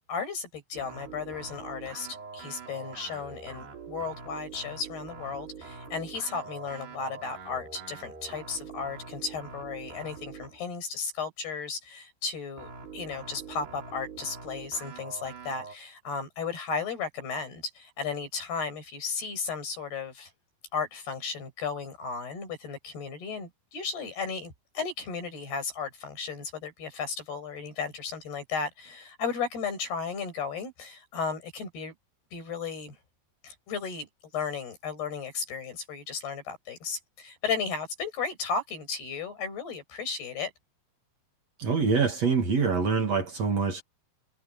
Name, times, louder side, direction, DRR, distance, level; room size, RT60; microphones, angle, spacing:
voice 1, 0.0-2.1 2.3-20.3 20.7-31.9 32.3-33.0 33.4-40.5, left 5 dB, 80° left, 9.1 m, -35 dB
sound 1, 0.7-10.6 12.6-15.8, right 5 dB, 85° right, 8.4 m, -44 dB
voice 2, 41.6-43.8, right 5 dB, 45° right, 3.1 m, -25 dB
omnidirectional pair, 4.5 m